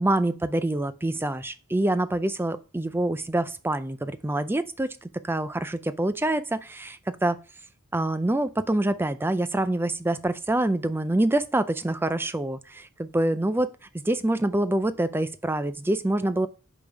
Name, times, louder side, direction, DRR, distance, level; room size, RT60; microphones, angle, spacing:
voice 1, 0.0-7.4 7.9-16.5, right 1 dB, 10° right, 0.4 m, -26 dB
5.3 x 5.2 x 4.6 m
head